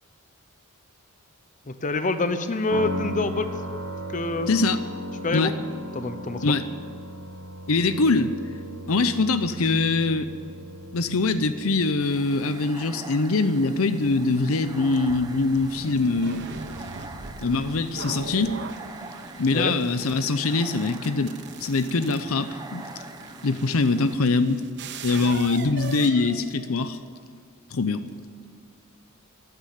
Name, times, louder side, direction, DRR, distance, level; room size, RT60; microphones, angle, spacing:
voice 1, 1.7-3.5 4.1-4.5 5.2-5.5 5.9-6.6 19.5-19.8, left 3 dB, 35° left, 10 dB, 0.8 m, -26 dB
sound 1, 2.7-16.5, equal, 90° right, 1.3 m, -38 dB
voice 2, 4.5-4.8 5.3-5.5 6.4-6.6 7.7-8.4 8.9-10.3 10.9-16.5 17.4-18.5 19.4-22.8 23.4-24.6 25.0-27.0 27.7-28.0, left 3 dB, 70° left, 11 dB, 0.7 m, -23 dB
sound 2, 12.0-24.2, right 2 dB, 20° right, 1.1 m, -43 dB
sound 3, 15.1-27.1, right 4 dB, 55° right, 0.9 m, -40 dB
15.0 x 9.8 x 9.5 m, 2.2 s
head